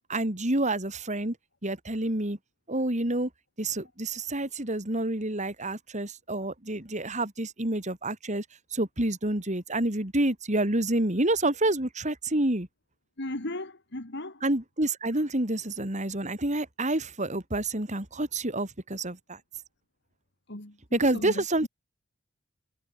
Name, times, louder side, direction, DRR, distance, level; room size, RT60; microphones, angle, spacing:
voice 1, 0.1-1.4 1.6-2.4 2.7-3.3 3.6-8.5 8.7-12.7 14.4-19.4 20.9-21.7, right 1 dB, 35° right, 3.5 m, -28 dB
voice 2, 13.2-14.4 20.5-21.7, left 1 dB, 55° left, 3.2 m, -37 dB
head